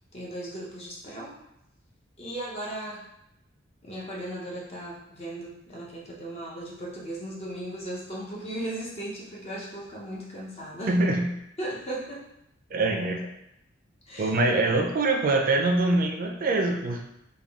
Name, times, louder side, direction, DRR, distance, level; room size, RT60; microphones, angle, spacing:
voice 1, 0.1-1.3 2.2-3.1 3.8-11.0 11.6-12.2 14.1-14.3, right 1 dB, 30° left, -4 dB, 0.7 m, -36 dB
voice 2, 10.9-11.3 12.7-13.3 14.2-17.0, right 2 dB, 45° right, 3 dB, 0.4 m, -24 dB
3.5 x 2.3 x 3.4 m, 0.81 s
head